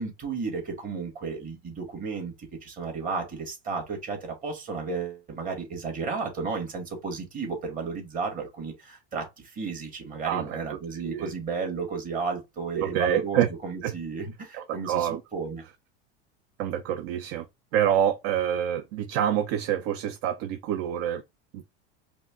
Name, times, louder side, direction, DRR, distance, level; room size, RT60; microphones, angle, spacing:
voice 1, 0.0-15.6, right 4 dB, 25° right, 1.9 m, -33 dB
voice 2, 10.2-10.6 11.0-11.3 12.7-13.5 13.8-13.9 14.5-15.2 16.6-17.4 17.7-21.2 21.5-21.6, right 10 dB, 50° right, 0.6 m, -27 dB
5.0 x 2.2 x 3.6 m
supercardioid pair, 140°, 31 cm